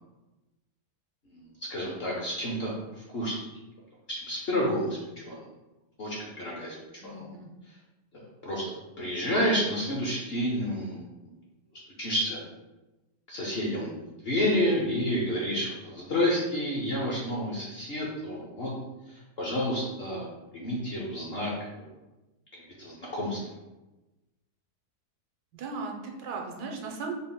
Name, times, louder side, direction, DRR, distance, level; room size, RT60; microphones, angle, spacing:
voice 1, 1.7-2.7 3.1-3.4 4.1-5.0 5.2-5.4 6.0-6.8 7.0-7.3 8.1-11.3 12.0-12.4 13.3-18.7 19.4-20.3 20.5-21.9 22.5-23.4, equal, 55° left, -4 dB, 0.7 m, -30 dB
voice 2, 7.0-7.5 25.5-27.1, right 4 dB, 90° right, 1 dB, 1.2 m, -37 dB
4.0 x 2.0 x 3.7 m, 1.0 s
omnidirectional pair, 1.7 m